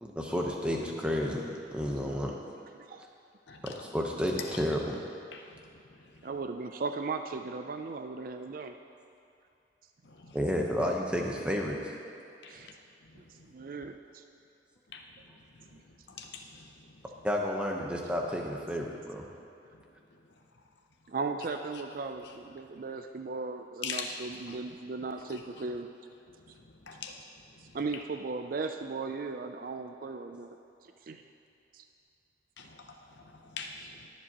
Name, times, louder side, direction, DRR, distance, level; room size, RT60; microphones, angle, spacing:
voice 1, 0.0-2.3 3.6-5.0 10.3-11.9 17.2-19.3, equal, 5° right, 0 dB, 0.9 m, -31 dB
voice 2, 3.5-3.8 5.3-5.4 10.1-10.4 12.4-12.6 14.9-15.0 16.1-16.7 23.8-24.1 24.5-24.6 26.9-27.1 32.6-32.8 33.2-33.7 34.0-34.1, left 6 dB, 65° left, 2 dB, 0.7 m, -41 dB
voice 3, 6.2-8.8 12.5-12.7 13.1-14.0 15.7-15.8 21.1-25.9 27.7-30.6 31.0-31.2 31.7-31.9, right 4 dB, 45° right, 6 dB, 0.4 m, -37 dB
20.5 x 7.5 x 3.0 m, 2.7 s
head